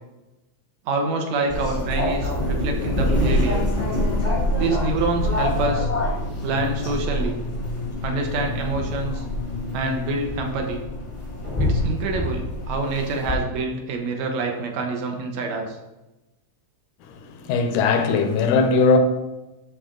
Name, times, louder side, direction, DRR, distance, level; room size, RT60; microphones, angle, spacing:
voice 1, 0.9-3.6 4.6-5.9 6.4-7.4 8.0-9.2 9.7-10.8 11.6-15.8, right 3 dB, 65° right, 2.2 m, -26 dB
sound 1, 1.5-13.3, left 1 dB, 30° left, 0.5 m, -25 dB
voice 2, 17.1-19.0, left 4 dB, 80° left, 2.3 m, -19 dB
12.5 x 4.2 x 3.8 m
omnidirectional pair, 3.6 m